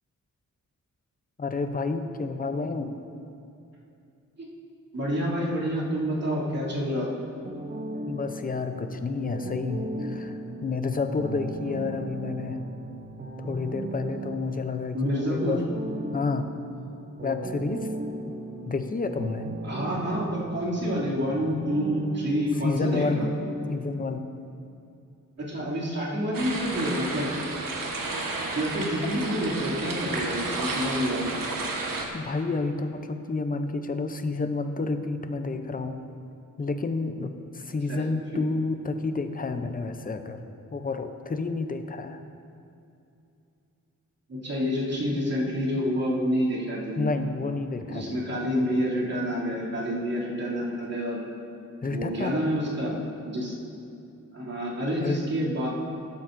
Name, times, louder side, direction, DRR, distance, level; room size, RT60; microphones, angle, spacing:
voice 1, 1.4-3.0 8.1-12.6 13.4-15.6 16.1-16.5 17.2-17.9 18.7-19.5 22.6-23.3 23.7-24.3 29.0-29.2 32.1-36.0 36.6-40.4 40.7-42.2 47.0-48.2 51.8-52.4 55.0-55.2, left 3 dB, 25° left, 8 dB, 0.5 m, -30 dB
voice 2, 4.9-7.1 14.9-15.5 19.6-23.3 25.4-27.3 28.5-31.3 37.9-38.0 38.3-38.4 44.3-47.1 47.9-51.2 51.9-52.9 53.3-53.5 54.3-55.7, equal, 50° right, -7 dB, 2.7 m, -28 dB
sound 1, 7.4-23.7, right 2 dB, 35° right, 0.5 m, -37 dB
sound 2, 26.3-32.1, right 3 dB, 85° right, 1.2 m, -32 dB
14.5 x 12.0 x 2.6 m, 2.7 s
wide cardioid pair, 175°, 32 cm